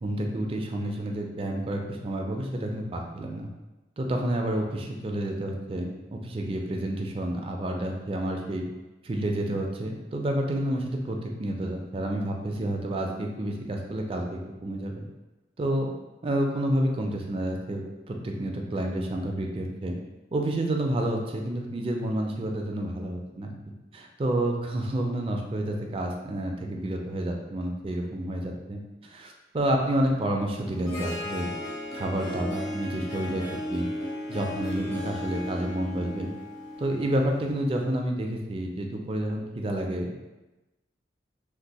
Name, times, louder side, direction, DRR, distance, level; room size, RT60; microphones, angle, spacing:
voice 1, 0.0-3.5 4.0-8.6 9.0-15.0 15.6-15.9 16.2-20.0 20.3-23.5 23.9-28.8 29.1-31.5 31.9-33.4 33.7-33.9 34.3-36.3 36.8-40.1, right 1 dB, 30° right, 1 dB, 0.4 m, -29 dB
Harp, 30.6-37.7, left 1 dB, 20° left, 0.6 m, -36 dB
2.6 x 2.2 x 4.0 m, 1.1 s
head